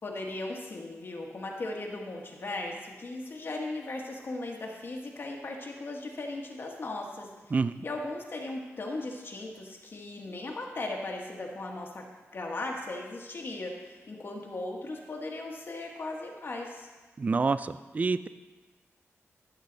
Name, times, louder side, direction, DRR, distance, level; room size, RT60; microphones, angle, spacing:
voice 1, 0.0-7.6 7.8-12.0 12.3-16.9, left 2 dB, 50° left, 0 dB, 1.3 m, -37 dB
voice 2, 17.2-18.3, right 4 dB, 30° right, 13 dB, 0.3 m, -27 dB
13.0 x 7.3 x 3.9 m, 1.2 s
wide cardioid pair, 100°, 5 cm